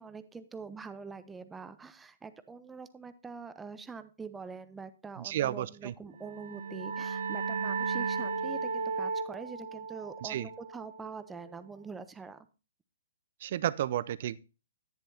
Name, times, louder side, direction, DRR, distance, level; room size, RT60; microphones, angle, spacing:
voice 1, 0.0-12.5, right 4 dB, 10° right, 0.7 m, -44 dB
voice 2, 5.2-5.9 10.2-10.5 13.4-14.4, right 12 dB, 50° right, 0.5 m, -32 dB
sound 1, 6.2-11.6, right 5 dB, 65° right, 1.0 m, -35 dB
10.5 x 9.9 x 2.8 m
figure-of-eight pair, 120°, 0 cm